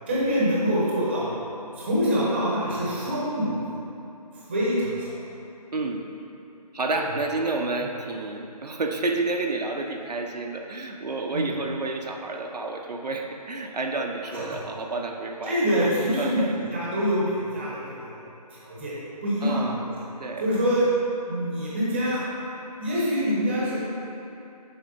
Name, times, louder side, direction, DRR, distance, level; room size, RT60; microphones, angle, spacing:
voice 1, 0.1-1.3 1.8-3.8 4.5-5.1 11.3-11.5 14.3-14.4 15.4-16.4 16.7-18.2 18.5-18.9 19.2-19.9 20.4-20.9 21.3-22.2 22.6-23.8, equal, 15° right, -7 dB, 0.8 m, -25 dB
voice 2, 5.7-6.1 6.7-15.6 16.2-16.6 19.4-19.8 20.2-20.5, right 3 dB, 75° right, 2 dB, 0.7 m, -30 dB
6.7 x 4.7 x 4.0 m, 2.8 s
figure-of-eight pair, 170°, 21 cm